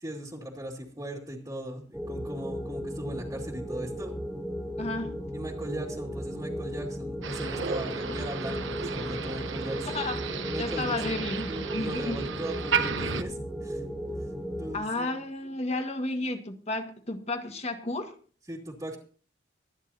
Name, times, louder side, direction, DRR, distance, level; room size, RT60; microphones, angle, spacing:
voice 1, 0.0-4.1 5.3-11.2 11.5-13.9 14.2-14.3 14.6-15.1 18.5-19.0, right 1 dB, 20° right, -2 dB, 2.2 m, -39 dB
sound 1, 1.9-14.8, equal, ahead, 1.9 m, -36 dB
voice 2, 4.8-5.1 8.5-8.6 9.9-10.3 10.6-12.2 14.7-18.1, left 2 dB, 35° left, 6 dB, 1.6 m, -32 dB
Motor vehicle (road), 7.2-13.2, right 5 dB, 85° right, 1.0 m, -33 dB
24.5 x 10.0 x 2.8 m, 0.41 s
head